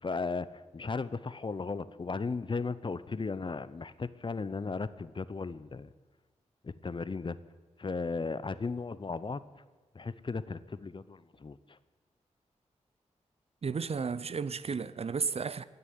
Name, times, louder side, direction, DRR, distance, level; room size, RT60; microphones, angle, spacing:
voice 1, 0.0-0.5 0.7-5.9 6.6-7.4 7.8-9.4 9.9-11.8, left 4 dB, 40° left, 0.7 m, -36 dB
voice 2, 13.6-15.6, right 5 dB, 55° right, 0.6 m, -33 dB
17.0 x 6.9 x 9.5 m
cardioid pair, 55°, 13 cm